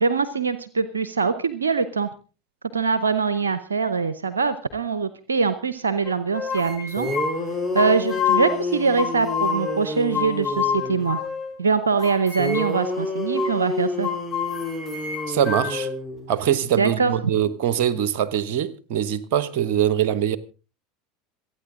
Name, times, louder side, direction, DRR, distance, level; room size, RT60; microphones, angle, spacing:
voice 1, 0.0-2.1 2.7-7.1 7.7-11.2 11.6-14.1 16.8-17.1, right 5 dB, 90° right, 0.7 m, -23 dB
sound 1, 6.0-8.5 9.0-9.8 10.1-11.5 12.0-12.9 13.4-13.6 14.0-15.9, left 7 dB, 35° left, 4.9 m, -28 dB
sound 2, 6.7-6.8 7.0-11.1 12.4-16.4, left 2 dB, 5° left, 3.8 m, -29 dB
voice 2, 15.3-15.9 16.3-20.4, right 10 dB, 60° right, 1.1 m, -23 dB
26.5 x 9.4 x 3.7 m
hypercardioid pair, 80°, 0 cm